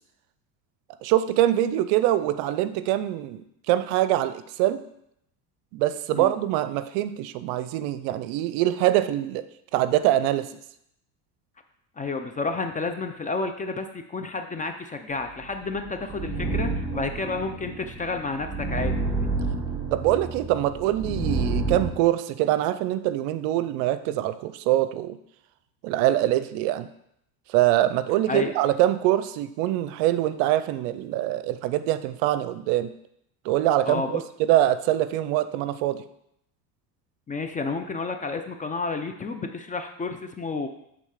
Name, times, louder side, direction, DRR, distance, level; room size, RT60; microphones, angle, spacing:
voice 1, 1.0-4.8 5.7-9.5 9.7-10.5 19.9-25.2 25.8-26.9 27.5-32.9 33.4-36.0, right 13 dB, 70° right, 13 dB, 0.6 m, -24 dB
voice 2, 12.0-19.3 28.3-28.5 33.8-34.2 37.3-40.7, left 3 dB, 15° left, 6 dB, 0.5 m, -31 dB
sound 1, 15.4-21.9, right 3 dB, 10° right, 1.1 m, -29 dB
7.7 x 3.8 x 4.8 m, 0.76 s
supercardioid pair, 100°, 47 cm